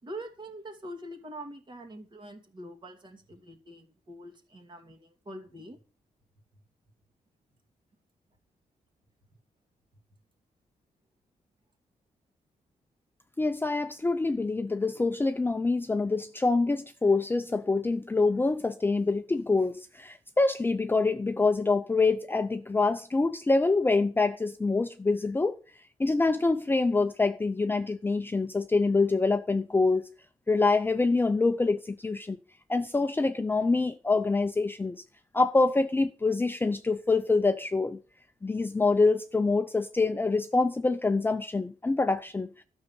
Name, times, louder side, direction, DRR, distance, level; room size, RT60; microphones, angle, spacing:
voice 1, 0.0-5.8, right 1 dB, 35° right, 2.6 m, -44 dB
voice 2, 13.4-25.6 26.0-30.1 30.5-32.4 32.7-35.0 35.3-38.0 38.4-42.5, left 3 dB, 15° left, 0.6 m, -26 dB
13.0 x 6.5 x 7.5 m
wide cardioid pair, 140°, 14 cm